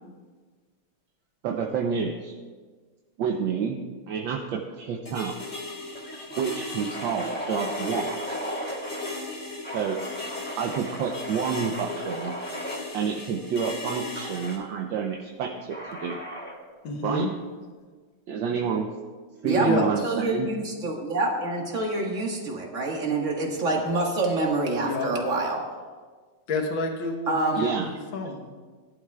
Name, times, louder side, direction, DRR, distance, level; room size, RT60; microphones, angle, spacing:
voice 1, 1.4-2.3 3.2-5.3 6.4-8.4 9.7-10.0 10.6-12.3 12.9-16.2 17.0-17.3 18.3-18.9 19.4-20.5 27.6-27.9, right 6 dB, 70° right, 2 dB, 1.4 m, -29 dB
sound 1, 4.7-5.0 5.3-5.4 5.9-9.2 9.6-12.8 14.2-14.6 15.7-16.6, equal, 5° left, 1.3 m, -37 dB
sound 2, 5.0-14.6, left 2 dB, 30° left, 3.3 m, -37 dB
voice 2, 16.8-17.3 19.6-19.9 24.8-25.1 26.5-28.5, left 2 dB, 70° left, 3 dB, 1.9 m, -29 dB
voice 3, 19.4-25.6 27.3-27.7, right 2 dB, 40° right, 0 dB, 1.9 m, -27 dB
19.0 x 11.5 x 2.4 m, 1.5 s
omnidirectional pair, 2.3 m